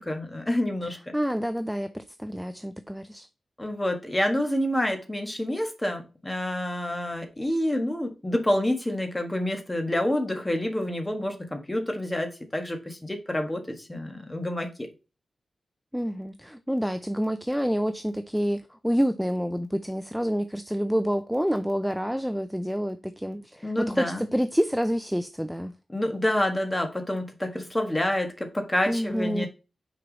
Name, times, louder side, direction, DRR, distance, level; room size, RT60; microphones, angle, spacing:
voice 1, 0.0-1.0 3.6-14.9 23.6-24.3 25.9-29.5, left 1 dB, 15° left, 1.4 m, -28 dB
voice 2, 1.1-3.3 15.9-25.7 28.9-29.5, equal, ahead, 0.4 m, -28 dB
6.2 x 4.6 x 4.0 m
wide cardioid pair, 125°, 0 cm